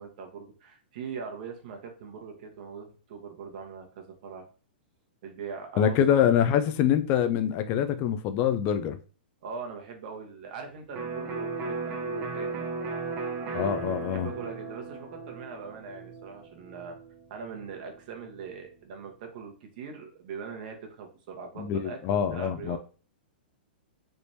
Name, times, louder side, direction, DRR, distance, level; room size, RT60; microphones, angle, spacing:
voice 1, 0.0-4.5 5.2-6.2 9.4-12.7 14.1-17.0 17.3-22.8, right 5 dB, 55° right, 1.0 m, -41 dB
voice 2, 5.8-9.0 13.5-14.3 21.6-22.8, left 9 dB, 35° left, 0.3 m, -25 dB
Electric guitar, 11.0-18.6, right 4 dB, 30° right, 0.6 m, -36 dB
3.4 x 2.9 x 2.6 m
hypercardioid pair, 130°, 5 cm